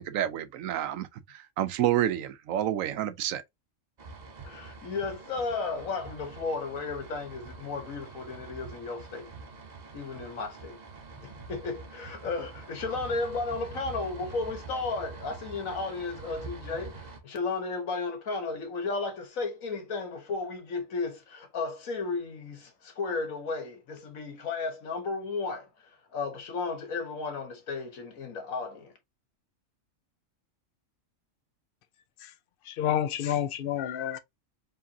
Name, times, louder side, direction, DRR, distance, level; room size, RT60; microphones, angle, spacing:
voice 1, 0.0-3.4, right 12 dB, 85° right, 1.0 m, -29 dB
sound 1, 4.0-17.2, right 3 dB, 35° right, 1.0 m, -45 dB
voice 2, 4.4-9.3 9.9-10.7 11.2-25.7 26.1-28.9, left 4 dB, 90° left, 1.6 m, -34 dB
voice 3, 32.7-34.2, left 10 dB, 60° left, 0.6 m, -29 dB
4.8 x 3.3 x 2.7 m
omnidirectional pair, 1.4 m